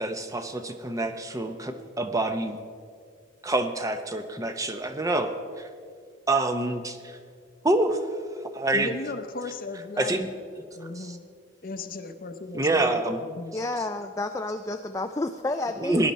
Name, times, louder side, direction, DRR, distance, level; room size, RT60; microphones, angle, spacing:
voice 1, 0.0-2.6 3.4-5.3 5.6-5.7 6.3-7.2 7.6-8.0 8.5-8.9 10.0-10.3 10.5-10.6 11.0-11.2 12.5-13.2 15.8-16.1, right 2 dB, 15° right, 7 dB, 0.7 m, -26 dB
voice 2, 8.7-10.3 10.7-11.2 11.6-13.6, left 3 dB, 45° left, 8 dB, 0.7 m, -36 dB
voice 3, 13.5-16.1, left 2 dB, 15° left, 6 dB, 0.3 m, -30 dB
18.5 x 10.5 x 4.2 m, 2.1 s
head